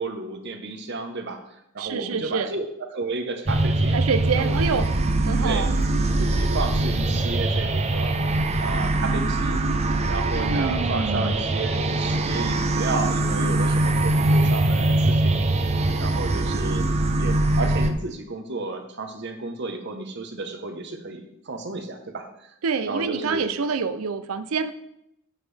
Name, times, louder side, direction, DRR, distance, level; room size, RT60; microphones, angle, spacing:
voice 1, 0.0-4.0 4.3-4.8 5.4-5.7 6.2-8.3 8.6-9.6 10.1-15.5 16.0-22.5 22.9-23.5, right 3 dB, 55° right, 6 dB, 0.9 m, -32 dB
voice 2, 1.8-2.5 3.9-4.9 5.3-5.7 10.3-11.3 22.6-24.7, right 5 dB, 75° right, 11 dB, 0.5 m, -26 dB
sound 1, 3.5-17.9, right 2 dB, 30° right, 0.5 m, -22 dB
8.0 x 7.4 x 3.4 m, 0.80 s
head